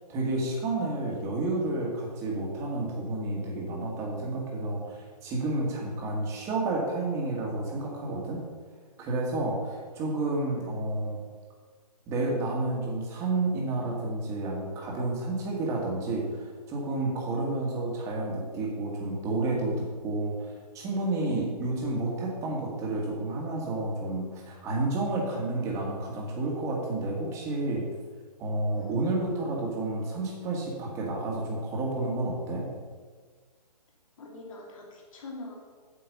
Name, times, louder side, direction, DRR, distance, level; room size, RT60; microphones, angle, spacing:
voice 1, 0.1-8.4 9.0-11.2 12.1-27.9 28.4-32.7, right 2 dB, 15° right, -2 dB, 1.7 m, -30 dB
voice 2, 5.8-6.1 9.6-9.7 10.5-10.7 28.7-29.1 34.2-35.6, left 2 dB, 55° left, -1 dB, 2.6 m, -44 dB
8.3 x 7.8 x 5.3 m, 1.5 s
hypercardioid pair, 160°, 21 cm